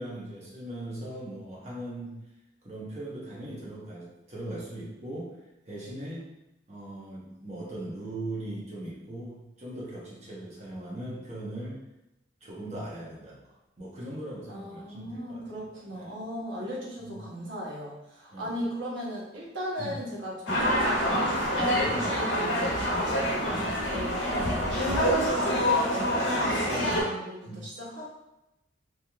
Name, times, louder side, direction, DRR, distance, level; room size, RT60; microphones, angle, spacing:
voice 1, 0.0-2.2 2.6-5.3 5.6-6.3 6.7-11.8 12.4-15.6 15.9-16.1 17.0-17.2 18.3-18.7 19.8-19.9 21.8-22.0 23.5-23.8 26.7-27.1 27.4-27.6, right 1 dB, 35° right, -6 dB, 0.9 m, -39 dB
voice 2, 14.5-23.4 23.9-28.1, equal, 85° right, -3 dB, 0.9 m, -37 dB
sound 1, 20.5-27.0, equal, 85° left, 0.9 m, -26 dB
3.2 x 2.8 x 2.3 m, 0.93 s
head